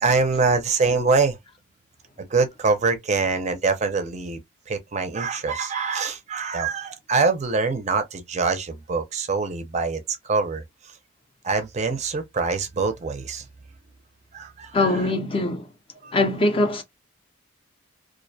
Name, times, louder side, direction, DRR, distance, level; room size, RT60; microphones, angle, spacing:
voice 1, 0.0-1.4 2.2-4.4 4.7-10.6 11.4-13.4 14.3-15.0 16.0-16.1, right 4 dB, 35° right, 0.4 m, -24 dB
voice 2, 14.7-15.7 16.1-16.8, left 2 dB, 25° left, 0.4 m, -22 dB
2.4 x 2.0 x 2.6 m
head